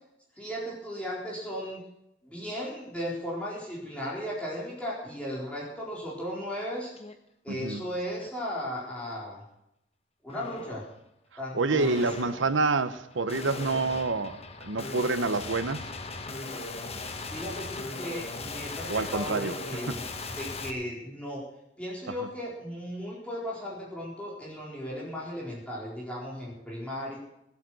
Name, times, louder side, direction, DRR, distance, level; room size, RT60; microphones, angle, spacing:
voice 1, 0.4-1.8 2.2-6.9 7.4-9.4 10.2-10.8 11.4-12.0 17.3-20.0 20.3-21.4 21.8-27.2, equal, 5° left, -5 dB, 4.3 m, -36 dB
sound 1, 7.0-7.1 7.6-8.3 8.8-9.2 10.3-10.9 11.8-20.7, left 3 dB, 35° left, 1.3 m, -39 dB
voice 2, 7.5-7.8 11.5-15.9 18.9-19.5 19.9-20.0, right 3 dB, 75° right, 12 dB, 0.9 m, -28 dB
19.5 x 8.5 x 6.4 m, 0.82 s
head